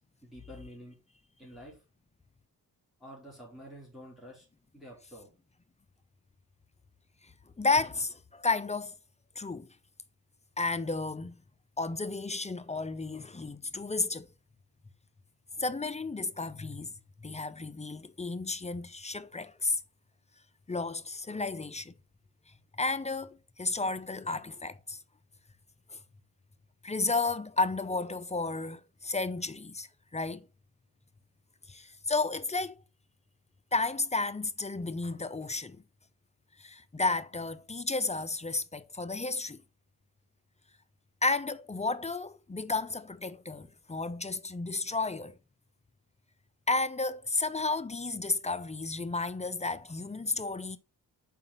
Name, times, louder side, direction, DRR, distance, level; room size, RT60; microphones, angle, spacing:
voice 1, 0.2-1.0 1.4-1.8 3.0-4.5 4.7-5.3, equal, ahead, 3.6 m, -48 dB
voice 2, 7.6-8.9 9.4-9.7 10.6-11.4 11.8-14.3 15.6-16.9 17.2-19.8 20.7-21.9 22.8-25.0 25.9-26.0 26.8-30.5 31.7-32.8 33.7-35.8 36.6-39.6 41.2-45.4 46.7-50.8, left 3 dB, 20° left, 0.6 m, -32 dB
5.6 x 4.9 x 5.5 m
cardioid pair, 80°, 37 cm